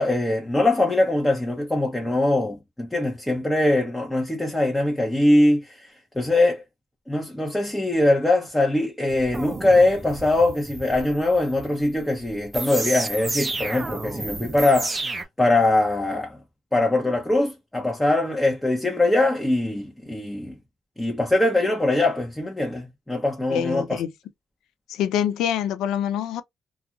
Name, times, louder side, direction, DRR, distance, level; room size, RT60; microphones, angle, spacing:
voice 1, 0.0-5.9 6.2-6.6 7.1-16.4 16.7-20.5 21.0-24.0, left 2 dB, 10° left, 0.8 m, -22 dB
sound 1, 9.1-15.2, right 3 dB, 25° right, 0.5 m, -32 dB
voice 2, 23.5-24.1 24.9-26.4, left 9 dB, 85° left, 0.4 m, -25 dB
2.4 x 2.3 x 2.8 m
cardioid pair, 90°, 0 cm